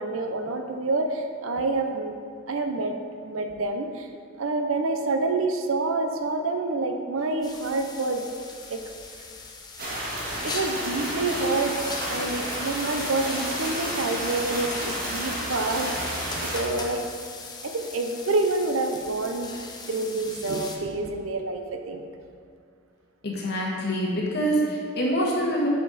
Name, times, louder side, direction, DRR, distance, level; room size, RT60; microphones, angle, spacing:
voice 1, 0.0-2.1 2.5-4.1 4.4-8.3 8.7-8.8 10.4-11.8 12.1-17.1 17.6-19.5 19.9-22.1, right 3 dB, 80° right, 6 dB, 0.7 m, -27 dB
sound 1, 7.4-20.8, left 3 dB, 20° left, 0.6 m, -39 dB
sound 2, 9.8-16.6, right 1 dB, 45° right, 1.6 m, -31 dB
voice 2, 23.2-25.7, right 1 dB, 55° left, -3 dB, 1.4 m, -25 dB
8.0 x 5.2 x 4.1 m, 2.2 s
head